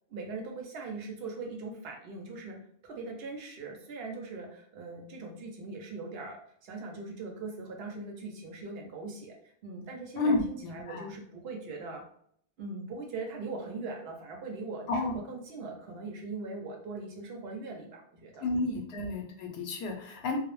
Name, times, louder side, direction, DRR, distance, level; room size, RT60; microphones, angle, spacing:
voice 1, 0.1-2.6 2.8-9.3 9.6-12.0 12.6-18.7, right 3 dB, 75° right, 1 dB, 0.8 m, -41 dB
voice 2, 10.2-11.1 14.9-15.2 18.4-20.4, left 2 dB, 90° left, 2 dB, 0.9 m, -31 dB
2.2 x 2.0 x 3.0 m, 0.65 s
omnidirectional pair, 1.0 m